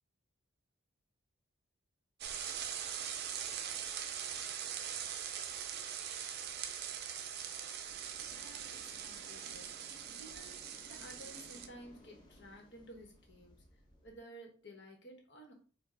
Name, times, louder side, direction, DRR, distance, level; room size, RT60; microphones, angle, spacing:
sound 1, 2.2-11.7, right 8 dB, 50° right, 0.4 m, -42 dB
sound 2, 7.8-14.2, equal, 20° left, 1.0 m, -60 dB
voice 1, 8.3-9.7 10.2-13.6 14.0-15.5, equal, 55° left, 2 dB, 1.1 m, -54 dB
5.2 x 2.2 x 3.8 m, 0.39 s
head